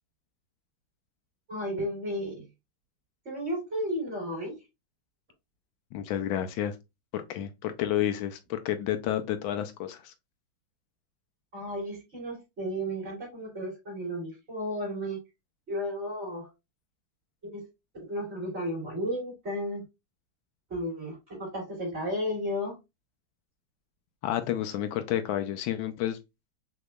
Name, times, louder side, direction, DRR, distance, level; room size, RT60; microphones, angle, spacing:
voice 1, 1.5-2.4 3.2-4.6 11.5-15.2 15.7-16.5 17.4-17.7 18.1-19.8 20.7-22.8, equal, 30° right, 3.1 m, -33 dB
voice 2, 5.9-6.7 7.1-10.1 24.2-26.2, left 11 dB, 80° left, 1.3 m, -30 dB
6.0 x 2.9 x 2.3 m
omnidirectional pair, 2.2 m